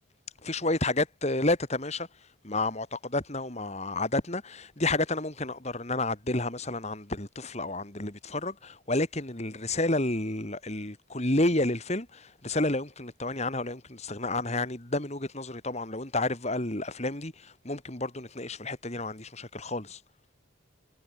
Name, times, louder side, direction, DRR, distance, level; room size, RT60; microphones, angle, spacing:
voice 1, 0.4-2.1 2.4-20.0, left 2 dB, 30° left, 2.5 m, -30 dB
head